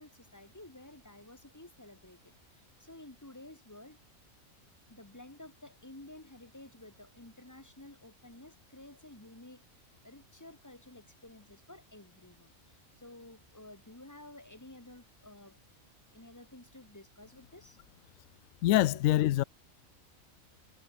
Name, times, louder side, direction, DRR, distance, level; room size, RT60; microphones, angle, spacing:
voice 1, 0.0-4.0 4.9-17.8 18.9-19.0, left 1 dB, 15° left, 2.3 m, -53 dB
voice 2, 18.6-19.4, left 14 dB, 75° left, 1.0 m, -25 dB
omnidirectional pair, 1.4 m